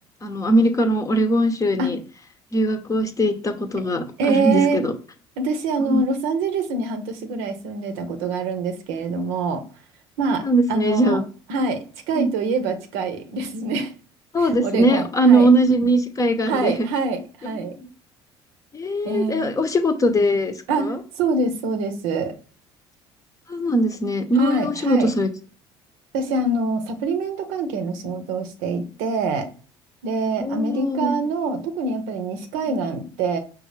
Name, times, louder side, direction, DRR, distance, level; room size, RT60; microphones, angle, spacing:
voice 1, 0.2-2.0 2.5-4.9 5.9-6.0 10.4-11.2 12.1-12.3 14.3-16.9 17.5-17.7 18.7-21.0 23.5-25.3 30.4-31.2, right 1 dB, 30° left, 8 dB, 0.7 m, -20 dB
voice 2, 4.2-4.8 5.4-9.6 10.2-11.2 11.5-13.9 14.4-15.5 16.5-17.7 19.0-19.7 20.7-22.3 24.4-25.1 26.1-29.5 30.0-33.4, right 3 dB, 75° right, 7 dB, 0.7 m, -25 dB
5.1 x 2.4 x 3.2 m, 0.39 s
hypercardioid pair, 65°, 12 cm